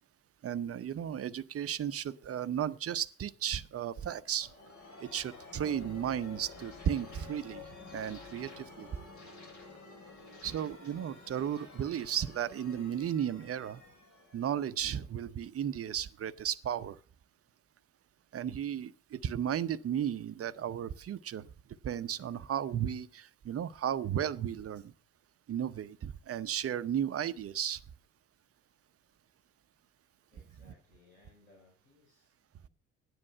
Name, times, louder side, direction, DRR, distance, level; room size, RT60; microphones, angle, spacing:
voice 1, 0.4-4.5 5.0-7.6 7.9-8.9 10.4-13.8 14.3-17.0 18.3-21.5 21.8-24.9 25.5-27.8, right 9 dB, 35° right, 0.8 m, -34 dB
sound 1, 4.0-15.5, left 3 dB, 45° left, 3.9 m, -51 dB
voice 2, 30.3-32.7, left 2 dB, 85° left, 4.1 m, -64 dB
13.0 x 9.7 x 5.6 m
hypercardioid pair, 55°, 39 cm